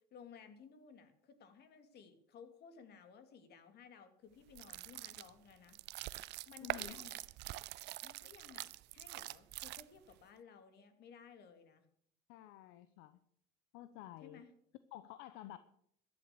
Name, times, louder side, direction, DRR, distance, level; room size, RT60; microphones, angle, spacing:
voice 1, 0.1-5.8 6.5-7.2 8.0-11.9 14.2-14.5, left 6 dB, 55° left, 8 dB, 2.9 m, -57 dB
sound 1, 4.5-10.2, right 17 dB, 60° right, 0.6 m, -45 dB
voice 2, 6.6-7.0 12.3-13.2 13.7-14.4 14.9-15.6, left 13 dB, 75° left, 13 dB, 0.9 m, -51 dB
14.0 x 11.0 x 6.8 m, 0.67 s
supercardioid pair, 90°, 20 cm